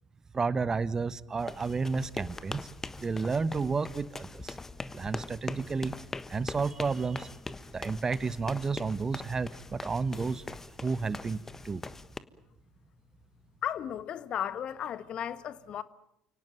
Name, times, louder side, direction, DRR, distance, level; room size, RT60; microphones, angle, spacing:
voice 1, 0.3-2.7 3.0-4.6 4.9-5.9 6.3-7.3 7.7-10.4 10.8-11.8, right 4 dB, 25° right, 1.0 m, -31 dB
sound 1, 1.4-12.2, left 3 dB, 20° left, 1.4 m, -42 dB
voice 2, 13.6-15.8, left 9 dB, 45° left, 1.3 m, -35 dB
29.5 x 18.5 x 9.3 m
figure-of-eight pair, 60°, 2 cm